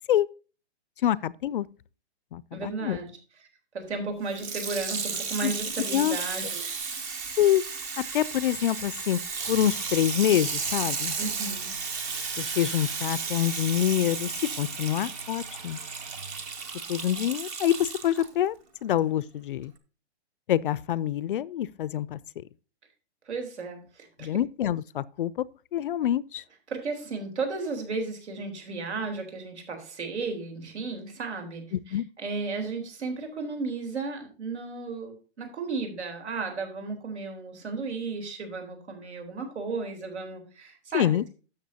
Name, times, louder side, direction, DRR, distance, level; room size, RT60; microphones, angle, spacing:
voice 1, 1.0-1.7 2.3-3.0 5.4-5.5 5.9-6.2 7.4-7.6 8.0-9.2 9.5-11.2 12.4-15.8 16.9-18.5 18.8-19.7 20.5-22.2 24.2-25.4 25.7-26.4 31.9-32.0 40.9-41.2, left 11 dB, 50° left, 0.4 m, -26 dB
voice 2, 2.5-3.1 3.7-6.8 11.2-11.7 23.3-24.3 26.7-41.3, right 4 dB, 85° right, 3.9 m, -34 dB
Water tap faucet / Sink (filling or washing), 4.3-18.3 19.0-19.1, right 5 dB, 15° right, 0.5 m, -34 dB
Engine / Tools, 9.3-17.6, right 4 dB, 30° right, 1.3 m, -48 dB
12.5 x 7.5 x 2.8 m
hypercardioid pair, 160°, 33 cm